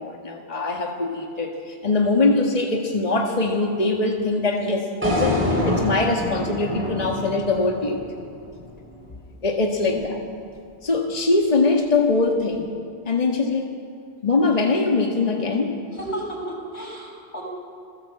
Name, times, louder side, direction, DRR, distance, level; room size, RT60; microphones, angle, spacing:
voice 1, 0.0-8.0 9.4-10.2 10.8-12.7 13.1-13.7 14.2-15.8, left 3 dB, 40° left, 1 dB, 1.8 m, -22 dB
sound 1, 5.0-9.1, left 1 dB, 10° right, 5.8 m, -26 dB
voice 2, 15.9-17.4, right 1 dB, 90° left, -2 dB, 6.2 m, -33 dB
28.0 x 15.5 x 7.8 m, 2.3 s
omnidirectional pair, 1.1 m